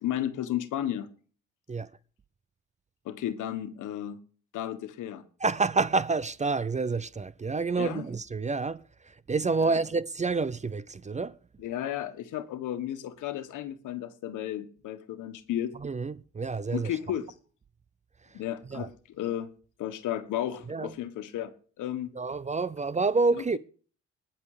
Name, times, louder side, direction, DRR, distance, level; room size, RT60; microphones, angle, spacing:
voice 1, 0.0-1.1 3.1-4.2 4.5-5.2 7.7-8.0 9.6-9.8 11.6-15.7 16.7-17.3 18.3-18.9 19.2-19.5 19.8-22.1, left 11 dB, 85° left, 1.6 m, -33 dB
voice 2, 5.4-11.4 15.8-17.0 18.2-18.4 18.7-18.9 20.7-20.9 22.1-23.6, right 4 dB, 25° right, 0.6 m, -28 dB
20.0 x 7.2 x 5.0 m
cardioid pair, 90°, 30 cm